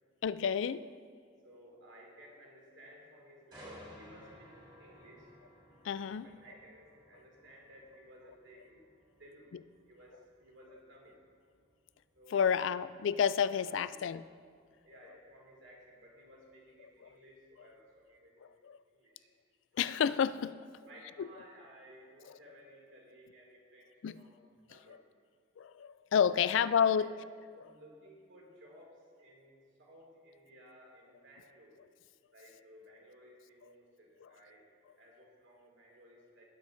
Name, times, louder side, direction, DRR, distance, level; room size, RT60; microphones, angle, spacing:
voice 1, 0.2-0.9 5.8-6.3 12.3-14.2 18.6-18.8 19.8-20.6 21.2-21.3 24.0-24.2 25.6-27.1 34.2-34.3, left 7 dB, 75° left, 15 dB, 0.3 m, -30 dB
voice 2, 1.4-5.3 6.2-8.9 9.2-9.5 9.9-11.2 12.1-12.8 13.5-14.1 14.8-19.3 20.8-25.0 26.4-26.6 27.0-27.2 27.6-31.8 32.3-34.7 35.0-36.4, equal, 75° right, -2 dB, 2.5 m, -57 dB
sound 1, 3.5-17.3 17.8-18.0, equal, 25° right, 2.9 m, -59 dB
18.0 x 8.4 x 2.6 m, 2.1 s
head